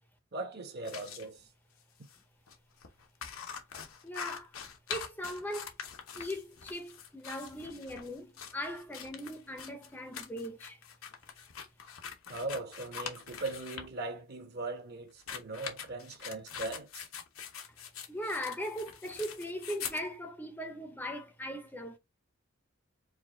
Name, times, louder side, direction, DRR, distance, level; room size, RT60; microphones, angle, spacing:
voice 1, 0.3-1.4 12.3-16.9, right 2 dB, 55° right, 1.0 m, -39 dB
sound 1, 0.8-1.3 2.0-2.2 2.5-2.6 2.8-13.9 15.1-20.1, left 7 dB, 85° left, 0.8 m, -44 dB
voice 2, 4.0-4.5 4.9-5.7 6.1-10.8 18.1-22.0, equal, 10° left, 0.6 m, -39 dB
4.8 x 2.2 x 3.6 m
head